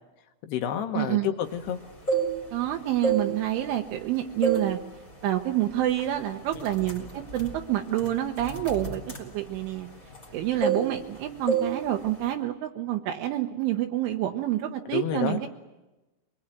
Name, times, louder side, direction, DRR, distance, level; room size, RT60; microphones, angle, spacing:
voice 1, 0.4-1.8 14.9-15.5, left 10 dB, 70° left, 7 dB, 2.8 m, -29 dB
voice 2, 0.9-1.3 2.5-4.8 5.2-9.9 10.3-15.5, right 13 dB, 80° right, 4 dB, 3.3 m, -28 dB
sound 1, 1.8-2.6 3.0-4.0 4.4-4.8 5.1-5.4 6.0-6.1 6.5-10.3 10.6-11.2 11.5-11.8 12.0-12.3, right 5 dB, 20° left, 3.4 m, -28 dB
23.5 x 22.0 x 9.0 m, 1.1 s
omnidirectional pair, 5.7 m